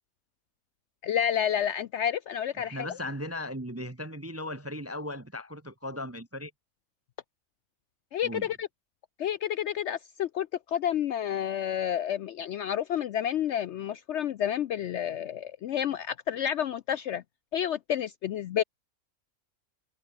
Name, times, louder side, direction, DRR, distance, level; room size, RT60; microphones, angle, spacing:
voice 1, 1.0-2.8 8.1-8.7 9.2-17.2 17.5-18.6, left 9 dB, 65° left, 0.7 m, -30 dB
voice 2, 2.6-6.5 8.2-8.5, left 1 dB, 15° right, 0.6 m, -37 dB
omnidirectional pair, 1.5 m